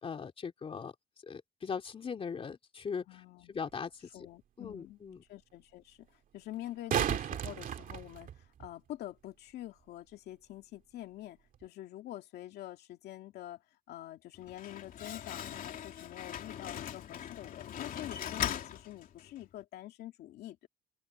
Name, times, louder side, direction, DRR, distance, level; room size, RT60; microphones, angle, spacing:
voice 1, 0.0-0.9 1.2-3.2 3.5-3.9 4.6-5.2, left 6 dB, 35° left, 2.8 m, -39 dB
voice 2, 3.1-3.5 4.1-5.0 5.3-6.1 6.3-20.7, left 14 dB, 75° left, 2.5 m, -46 dB
sound 1, 3.7-3.8 6.5-8.7 11.5-11.6, right 9 dB, 55° right, 2.3 m, -34 dB
Slam, 14.3-19.5, left 10 dB, 55° left, 2.9 m, -40 dB
open air
cardioid pair, 110°, 17 cm